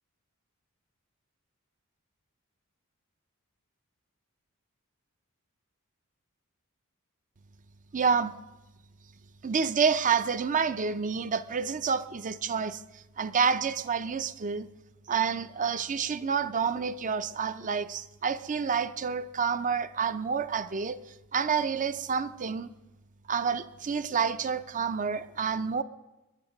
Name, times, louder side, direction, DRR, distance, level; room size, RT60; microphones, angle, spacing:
voice 1, 7.9-8.3 9.4-14.7 15.1-21.0 21.3-22.7 23.3-25.8, right 6 dB, 35° right, 13 dB, 0.5 m, -28 dB
21.5 x 11.0 x 5.2 m, 1.1 s
head